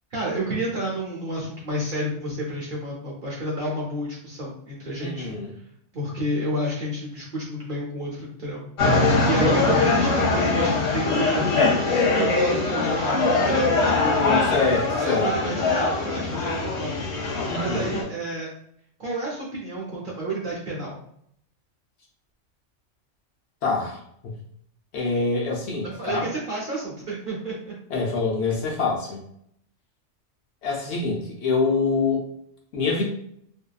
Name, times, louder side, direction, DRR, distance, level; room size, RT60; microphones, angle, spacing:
voice 1, 0.1-5.3 5.9-8.6 9.2-14.2 15.0-17.0 17.6-18.5 19.0-21.0 25.8-27.8, right 1 dB, 55° right, -4 dB, 0.6 m, -30 dB
voice 2, 5.0-5.5 13.9-15.6 17.5-17.9 23.6-24.4 24.9-26.3 27.9-29.2 30.6-32.2 32.7-33.0, left 4 dB, 65° left, -2 dB, 0.8 m, -25 dB
sound 1, 8.8-18.0, left 3 dB, 85° left, 1.1 m, -22 dB
2.6 x 2.1 x 2.2 m, 0.70 s
omnidirectional pair, 1.3 m